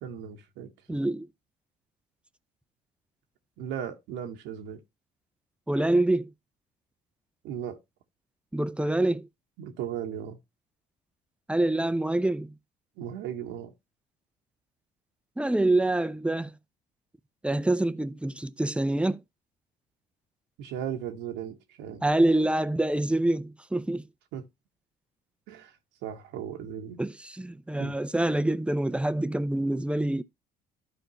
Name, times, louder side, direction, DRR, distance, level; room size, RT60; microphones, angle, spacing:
voice 1, 0.0-0.7 3.6-4.8 7.4-7.8 9.6-10.4 13.0-13.7 20.6-22.0 24.3-24.4 25.5-25.8 26.0-27.0 27.8-28.0, right 9 dB, 75° right, 1.1 m, -36 dB
voice 2, 0.9-1.3 5.7-6.3 8.5-9.3 11.5-12.5 15.4-16.5 17.4-19.2 22.0-24.0 27.0-30.2, right 1 dB, 5° right, 0.5 m, -26 dB
13.0 x 4.4 x 2.9 m
hypercardioid pair, 60°, 19 cm